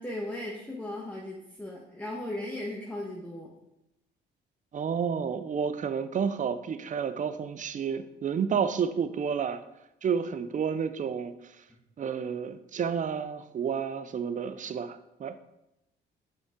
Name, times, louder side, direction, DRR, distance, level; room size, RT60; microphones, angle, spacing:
voice 1, 0.0-3.5, left 1 dB, 10° left, -2 dB, 1.1 m, -37 dB
voice 2, 4.7-9.6 10.0-11.3 12.0-15.4, right 7 dB, 40° right, 11 dB, 0.5 m, -30 dB
6.4 x 5.4 x 3.7 m, 0.88 s
cardioid pair, 90°, 20 cm